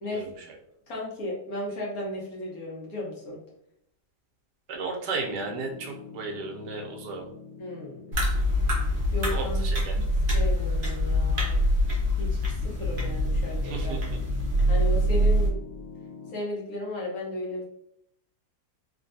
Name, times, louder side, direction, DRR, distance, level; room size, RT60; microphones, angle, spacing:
voice 1, 0.1-0.5 4.7-7.3 9.3-9.9 13.6-14.2, right 4 dB, 75° right, 2 dB, 1.2 m, -34 dB
voice 2, 0.9-3.4 7.6-8.0 9.1-9.6 9.9-10.0 10.3-11.6 12.2-14.0 14.7-15.5 16.3-17.6, left 1 dB, 60° left, -4 dB, 1.3 m, -35 dB
Piano, 5.3-16.3, left 5 dB, 80° left, 1.3 m, -47 dB
sound 1, 8.1-15.5, equal, 45° right, 0.7 m, -25 dB
3.3 x 2.6 x 2.6 m, 0.73 s
omnidirectional pair, 1.9 m